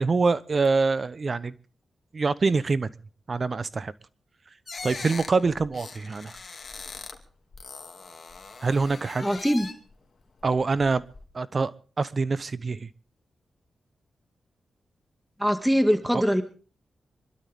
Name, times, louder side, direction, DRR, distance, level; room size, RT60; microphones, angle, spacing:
voice 1, 0.0-1.5 2.1-2.9 3.3-3.9 4.8-6.4 8.6-9.3 10.4-11.0 11.3-11.7 12.0-12.9 16.1-16.2, right 4 dB, 50° right, 17 dB, 1.0 m, -25 dB
sound 1, 4.7-7.2 7.5-9.9 10.4-11.2, left 4 dB, 50° left, 2.7 m, -41 dB
voice 2, 9.2-9.7 15.4-16.4, equal, 5° right, 7 dB, 2.2 m, -22 dB
26.0 x 12.5 x 3.7 m, 0.40 s
supercardioid pair, 45°, 0 cm